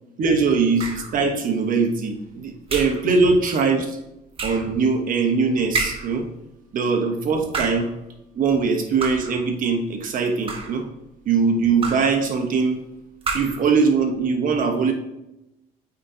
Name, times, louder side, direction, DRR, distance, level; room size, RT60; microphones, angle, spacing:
voice 1, 0.2-4.0 4.4-6.3 6.7-7.9 8.3-10.8 11.3-12.8 13.3-14.9, right 4 dB, 55° right, 4 dB, 1.0 m, -21 dB
sound 1, 0.8-1.2 2.7-3.1 4.4-4.7 5.7-6.2 7.4-7.9 9.0-9.4 10.3-10.9 11.8-12.2 13.2-13.7, right 3 dB, 35° right, 1.2 m, -29 dB
8.6 x 3.9 x 2.8 m, 0.89 s
cardioid pair, 110°, 17 cm